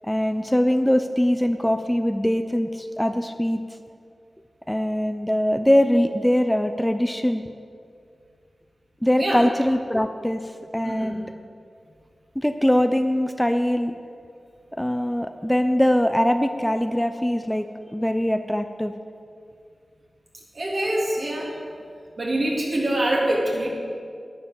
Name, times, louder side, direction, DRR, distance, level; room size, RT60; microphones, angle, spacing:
voice 1, 0.0-3.6 4.7-7.4 9.0-11.3 12.4-14.0 14.8-17.7 17.9-18.9, equal, 10° left, 8 dB, 0.6 m, -22 dB
voice 2, 9.2-9.5 10.8-11.2 20.5-21.6 22.2-23.7, right 1 dB, 60° right, -3 dB, 3.4 m, -24 dB
11.0 x 10.5 x 7.0 m, 2.3 s
wide cardioid pair, 65°, 0 cm